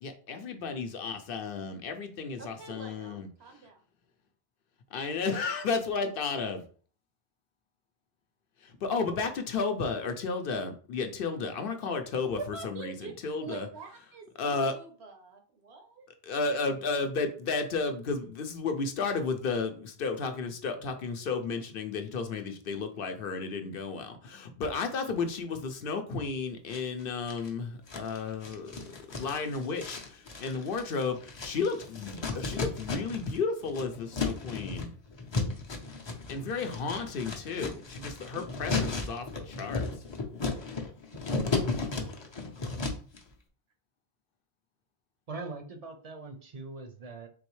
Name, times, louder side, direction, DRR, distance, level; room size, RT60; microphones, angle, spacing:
voice 1, 0.0-3.3 4.9-6.6 8.6-13.7 14.4-14.7 16.2-28.7 29.1-34.9 36.3-39.9, left 4 dB, 65° left, 6 dB, 0.7 m, -33 dB
voice 2, 2.4-3.8 12.4-14.3 14.7-16.1, right 5 dB, 80° right, 4 dB, 1.1 m, -45 dB
sound 1, 26.7-27.5 27.9-33.4 33.6-43.2, left 3 dB, 35° left, 0.5 m, -35 dB
voice 3, 45.3-47.3, right 3 dB, 45° right, 5 dB, 0.6 m, -41 dB
3.8 x 3.1 x 3.0 m, 0.42 s
omnidirectional pair, 1.1 m